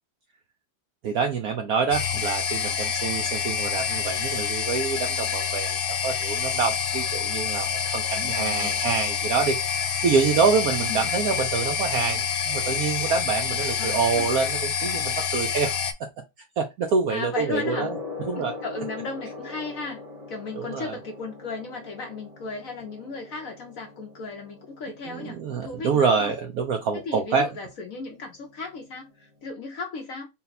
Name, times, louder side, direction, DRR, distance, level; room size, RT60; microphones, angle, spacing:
voice 1, 1.0-15.8 16.6-17.9 18.3-18.5 20.6-20.9 25.1-27.5, right 5 dB, 70° right, 0.8 m, -26 dB
sound 1, 1.9-15.9, left 7 dB, 80° left, 1.3 m, -27 dB
voice 2, 8.1-8.8 10.9-11.1 13.8-14.2 17.1-17.9 18.3-20.0 20.3-26.3 27.0-30.3, left 4 dB, 60° left, 0.9 m, -35 dB
Gong, 17.5-29.5, left 3 dB, 40° right, 0.5 m, -41 dB
4.1 x 2.1 x 4.0 m
omnidirectional pair, 2.1 m